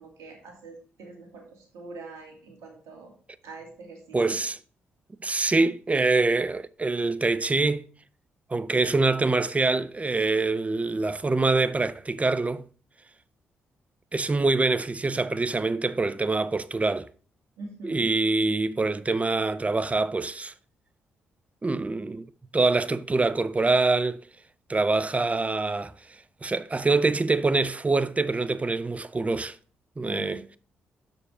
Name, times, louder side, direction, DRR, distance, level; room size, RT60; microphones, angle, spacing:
voice 1, 0.0-3.1 3.4-4.4 17.6-18.1 30.0-30.4, right 2 dB, 75° right, 2.2 m, -43 dB
voice 2, 4.1-4.6 5.2-7.8 8.5-12.6 14.1-17.1 17.8-20.5 21.6-22.3 22.5-24.2 24.7-25.9 26.4-29.6 30.0-30.4, right 3 dB, 25° right, 0.6 m, -25 dB
6.4 x 5.2 x 6.0 m
hypercardioid pair, 45°, 5 cm